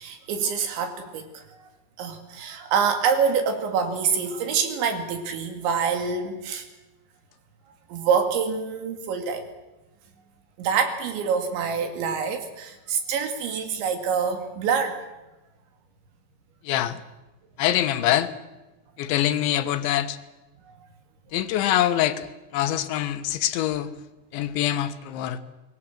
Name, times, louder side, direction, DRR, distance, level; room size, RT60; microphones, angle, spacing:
voice 1, 0.0-1.4 2.0-6.6 7.9-9.4 10.6-15.0, right 6 dB, 85° right, 4.8 m, -26 dB
voice 2, 16.7-17.0 17.6-18.3 19.0-20.2 21.3-22.3 22.5-23.9 24.3-25.4, left 12 dB, 85° left, 3.6 m, -24 dB
26.5 x 21.0 x 7.5 m
omnidirectional pair, 5.1 m